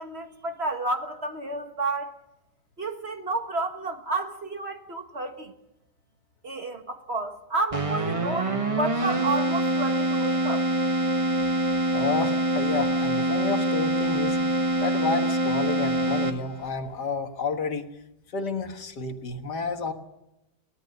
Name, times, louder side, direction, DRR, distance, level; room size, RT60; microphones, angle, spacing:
voice 1, 0.0-2.2 2.8-5.5 6.4-10.7, right 2 dB, 40° right, 1.6 m, -31 dB
Keyboard (musical), 7.7-16.7, right 1 dB, 20° right, 1.3 m, -25 dB
voice 2, 11.9-14.4 14.8-17.8 18.3-19.9, left 4 dB, 70° left, 2.1 m, -30 dB
23.0 x 17.5 x 6.6 m
omnidirectional pair, 1.9 m